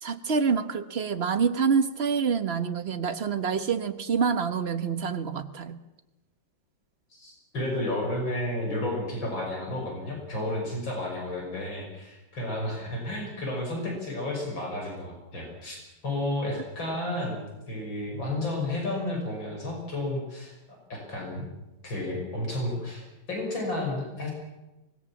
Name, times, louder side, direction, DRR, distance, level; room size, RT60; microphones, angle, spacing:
voice 1, 0.0-5.8, right 6 dB, 35° right, 9 dB, 1.3 m, -27 dB
voice 2, 7.1-15.8 16.0-20.5 20.9-21.5 21.8-24.3, left 1 dB, 75° left, 0 dB, 6.7 m, -32 dB
25.0 x 20.5 x 7.3 m, 1.0 s
omnidirectional pair, 2.1 m